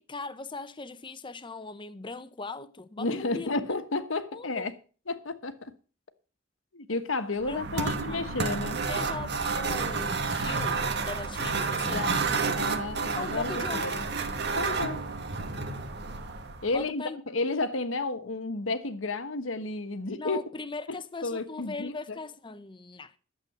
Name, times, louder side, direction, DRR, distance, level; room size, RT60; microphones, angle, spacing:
voice 1, 0.0-3.6 4.3-4.6 7.5-8.2 8.9-12.5 13.2-13.9 16.7-17.2 20.2-23.1, left 3 dB, 25° left, 0.8 m, -39 dB
voice 2, 3.0-4.7 5.1-5.7 6.7-8.8 11.9-12.2 12.5-14.0 14.6-15.1 16.6-20.4 21.2-22.2, left 3 dB, 75° left, 1.3 m, -32 dB
sound 1, 7.4-16.8, right 4 dB, 55° right, 1.5 m, -30 dB
11.5 x 7.8 x 6.7 m
head